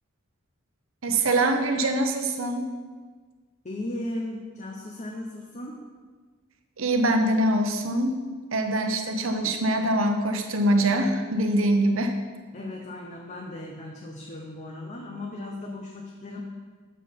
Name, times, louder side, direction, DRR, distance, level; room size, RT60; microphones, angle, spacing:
voice 1, 1.0-2.7 6.8-8.2 8.5-12.2, right 1 dB, 65° right, 5 dB, 0.8 m, -23 dB
voice 2, 3.6-5.8 12.5-16.4, left 1 dB, 35° left, 0 dB, 0.7 m, -36 dB
7.4 x 5.6 x 5.8 m, 1.4 s
head